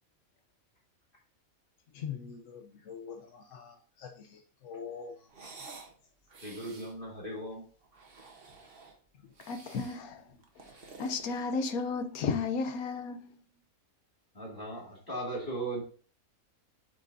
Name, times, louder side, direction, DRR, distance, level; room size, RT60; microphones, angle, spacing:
voice 1, 1.9-5.3 9.2-9.3, left 7 dB, 65° left, 1.1 m, -44 dB
sound 1, 5.3-5.9 6.3-7.0 7.8-9.0 9.3-10.0 10.4-12.0, right 3 dB, 45° right, 1.3 m, -51 dB
voice 2, 6.4-7.6 14.3-15.8, right 1 dB, 40° left, 2.7 m, -37 dB
voice 3, 9.5-10.3 11.0-13.4, left 4 dB, 85° left, 1.3 m, -33 dB
8.3 x 5.0 x 2.7 m
omnidirectional pair, 1.5 m